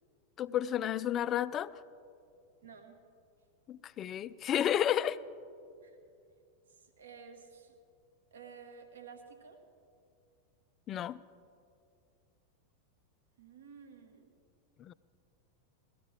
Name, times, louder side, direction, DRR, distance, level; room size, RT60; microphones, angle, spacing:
voice 1, 0.4-1.7 3.7-5.2 10.9-11.2 14.8-14.9, left 10 dB, 30° left, 0.3 m, -31 dB
voice 2, 2.6-3.0 5.8-6.0 6.7-7.7 8.3-9.6 13.4-14.3, right 6 dB, 65° right, 1.2 m, -52 dB
18.5 x 13.0 x 3.3 m
figure-of-eight pair, 90°, 0 cm